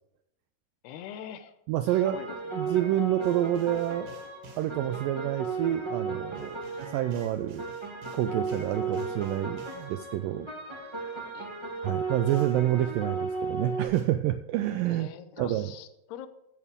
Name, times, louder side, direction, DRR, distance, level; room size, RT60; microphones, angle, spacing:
voice 1, 0.8-1.6 1.9-2.7 11.3-11.5 14.9-16.3, left 9 dB, 90° left, 11 dB, 2.9 m, -43 dB
voice 2, 1.7-2.2 2.6-4.1 4.6-7.6 8.1-10.8 11.8-15.1 15.4-15.7, right 12 dB, 85° right, 10 dB, 2.0 m, -28 dB
sound 1, 1.9-13.9, right 4 dB, 15° right, 1.1 m, -35 dB
sound 2, 3.2-4.7 6.4-10.0 12.3-12.7 13.9-14.0, right 3 dB, 60° right, 3.7 m, -52 dB
15.0 x 8.5 x 3.6 m, 0.85 s
omnidirectional pair, 4.5 m